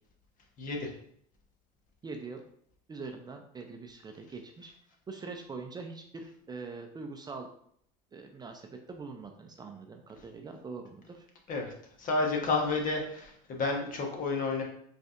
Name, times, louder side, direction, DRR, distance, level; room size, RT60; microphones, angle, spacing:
voice 1, 0.6-0.9 11.5-11.7 12.0-14.6, left 3 dB, 45° left, 2 dB, 1.1 m, -30 dB
voice 2, 2.0-2.4 2.9-4.7 5.1-7.5 8.1-11.3, right 4 dB, 20° right, 4 dB, 0.5 m, -43 dB
5.0 x 3.3 x 2.5 m, 0.67 s
hypercardioid pair, 85°, 19 cm